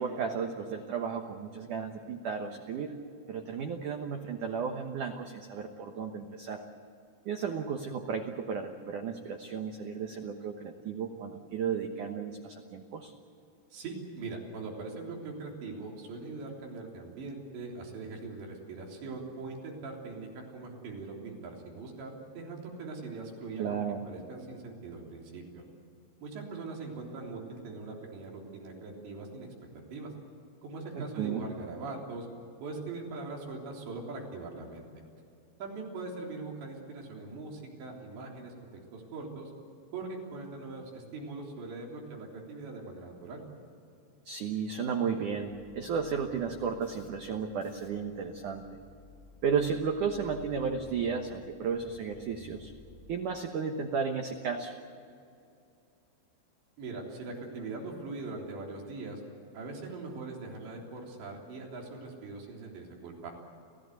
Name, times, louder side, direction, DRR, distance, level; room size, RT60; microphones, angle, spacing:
voice 1, 0.0-3.0 3.3-6.6 7.3-13.1 23.6-24.1 31.0-31.4 44.3-48.6 49.4-52.7 53.1-54.7, right 6 dB, 85° right, 4 dB, 1.7 m, -34 dB
voice 2, 13.7-25.6 26.2-29.5 29.9-30.1 30.6-32.3 32.6-34.9 35.6-38.5 38.9-39.5 39.9-43.4 56.8-59.2 59.5-63.3, right 3 dB, 65° right, -1 dB, 5.7 m, -41 dB
sound 1, 45.4-53.1, left 4 dB, 65° left, 4.7 m, -55 dB
29.5 x 16.0 x 8.1 m, 2.5 s
omnidirectional pair, 5.6 m